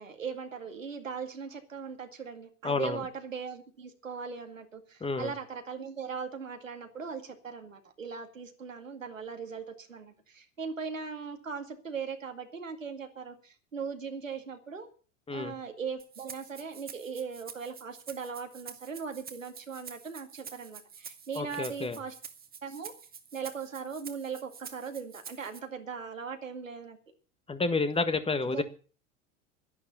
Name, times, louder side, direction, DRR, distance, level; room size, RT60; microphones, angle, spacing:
voice 1, 0.0-14.9 15.3-22.1 22.6-22.9 23.3-27.0 28.4-28.6, right 6 dB, 90° right, 5 dB, 2.2 m, -39 dB
voice 2, 2.6-3.0 5.0-5.3 15.3-15.5 21.4-22.0 27.5-28.6, left 3 dB, 15° left, 10 dB, 1.6 m, -30 dB
Rattle (instrument), 16.0-25.6, right 6 dB, 25° right, 1.8 m, -48 dB
11.5 x 11.0 x 6.9 m, 0.39 s
figure-of-eight pair, 80°, 38 cm